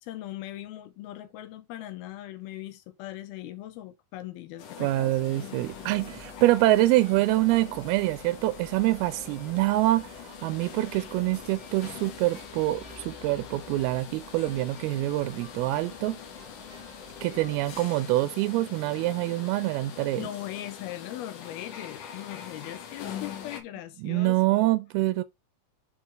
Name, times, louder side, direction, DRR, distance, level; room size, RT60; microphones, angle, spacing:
voice 1, 0.0-5.1 20.2-24.8, left 13 dB, 85° left, 2.6 m, -40 dB
sound 1, 4.6-23.6, left 8 dB, 65° left, 2.8 m, -43 dB
voice 2, 4.8-16.2 17.2-20.3 24.0-25.2, right 17 dB, 85° right, 2.4 m, -25 dB
sound 2, 5.6-17.9, right 3 dB, 35° right, 0.6 m, -52 dB
7.1 x 4.4 x 4.5 m
omnidirectional pair, 4.4 m